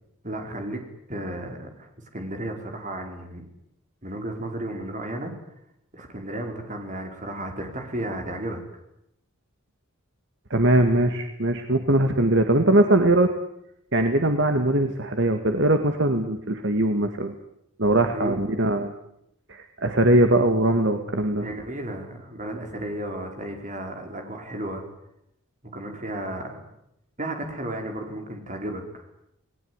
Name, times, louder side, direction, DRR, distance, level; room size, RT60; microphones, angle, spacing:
voice 1, 0.2-0.8 1.1-3.5 4.0-5.3 5.9-8.6 18.1-18.4 21.4-24.8 25.6-26.7 27.2-29.0, right 1 dB, 35° right, 3 dB, 5.3 m, -33 dB
voice 2, 10.5-13.3 13.9-17.3 17.8-18.9 19.5-21.5, right 1 dB, 55° right, 6 dB, 2.1 m, -21 dB
29.5 x 19.5 x 9.8 m, 0.79 s
head